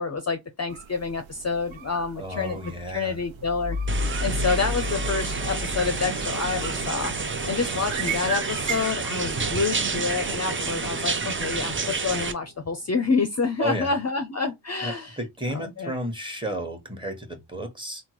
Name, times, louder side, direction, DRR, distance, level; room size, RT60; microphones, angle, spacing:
voice 1, 0.0-3.8 4.2-15.2 15.5-15.9, left 4 dB, 35° left, 0.5 m, -28 dB
sound 1, 0.7-9.0, right 8 dB, 80° right, 0.5 m, -38 dB
voice 2, 2.2-3.2 13.6-13.9 14.8-18.0, right 1 dB, 10° right, 1.2 m, -32 dB
sound 2, 3.4-12.7, left 2 dB, 55° right, 0.9 m, -35 dB
sound 3, 3.9-12.3, right 4 dB, 25° right, 0.5 m, -29 dB
3.5 x 2.1 x 2.9 m
cardioid pair, 45°, 46 cm